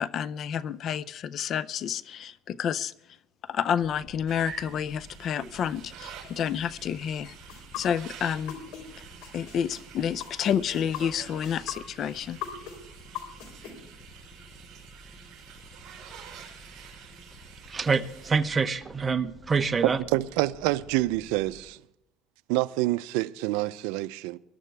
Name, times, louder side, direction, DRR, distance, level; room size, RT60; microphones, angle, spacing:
voice 1, 0.0-2.9 3.5-7.3 7.8-8.5 9.3-12.4, left 8 dB, 45° left, 0.5 m, -29 dB
sound 1, 3.8-21.6, right 1 dB, 5° left, 5.4 m, -51 dB
sound 2, 4.3-18.3, right 7 dB, 45° right, 5.3 m, -48 dB
sound 3, 7.5-8.8 9.2-13.7, left 12 dB, 70° left, 3.6 m, -38 dB
voice 2, 17.7-20.0, right 5 dB, 20° right, 0.8 m, -26 dB
voice 3, 20.1-21.8 22.5-24.4, right 18 dB, 85° right, 0.5 m, -27 dB
21.0 x 12.0 x 3.4 m
cardioid pair, 130°, 0 cm